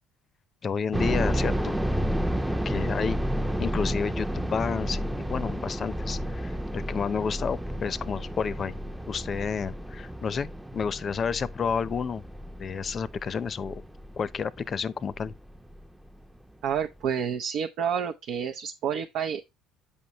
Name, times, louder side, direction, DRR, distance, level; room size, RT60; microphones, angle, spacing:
voice 1, 0.6-1.8 2.6-3.2 3.6-8.8 9.1-12.2 12.6-13.8 14.2-15.3, left 6 dB, 40° left, 0.6 m, -30 dB
sound 1, 0.9-15.8 16.1-16.2 16.8-17.1, equal, 5° right, 0.7 m, -31 dB
voice 2, 16.6-19.4, right 8 dB, 70° right, 0.7 m, -29 dB
8.4 x 5.5 x 3.0 m
supercardioid pair, 90°, 0 cm